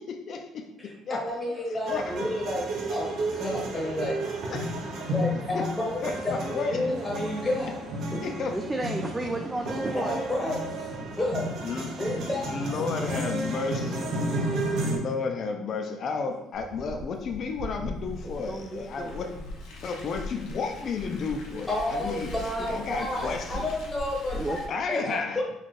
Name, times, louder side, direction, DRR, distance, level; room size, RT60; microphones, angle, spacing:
voice 1, 0.0-0.6 1.1-1.2 1.9-2.1 4.5-4.7 5.5-5.6 6.0-6.8 8.2-8.5 11.6-11.9 12.5-14.1 14.8-19.3 19.8-22.3 22.7-23.7 24.7-25.4, left 4 dB, 50° left, 4 dB, 0.4 m, -32 dB
voice 2, 0.8-4.2 5.1-7.7 8.1-8.2 9.9-10.9 11.2-11.5 12.0-12.8 21.7-24.4 24.9-25.4, left 1 dB, 10° left, -3 dB, 1.0 m, -31 dB
sound 1, 1.9-15.0, right 1 dB, 65° right, 0.7 m, -32 dB
voice 3, 8.5-10.2 18.5-19.3 22.0-22.8 24.3-24.6, right 2 dB, 15° right, 3 dB, 0.3 m, -33 dB
Car, 16.5-24.7, left 1 dB, 85° left, 0.8 m, -40 dB
4.2 x 2.4 x 3.2 m, 0.88 s
cardioid pair, 105°, 0 cm